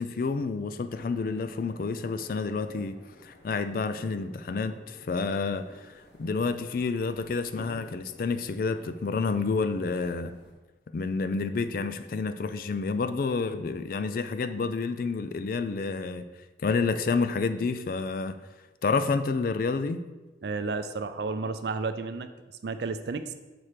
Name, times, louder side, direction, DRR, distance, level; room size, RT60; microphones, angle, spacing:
voice 1, 0.0-3.0 3.2-10.3 10.9-16.2 16.6-18.4 18.8-20.0, left 4 dB, 50° left, 0.3 m, -29 dB
sound 1, 0.9-10.5, left 1 dB, 65° left, 1.1 m, -52 dB
voice 2, 20.4-22.3 22.6-23.3, right 4 dB, 65° right, 0.4 m, -32 dB
6.1 x 4.3 x 5.0 m
head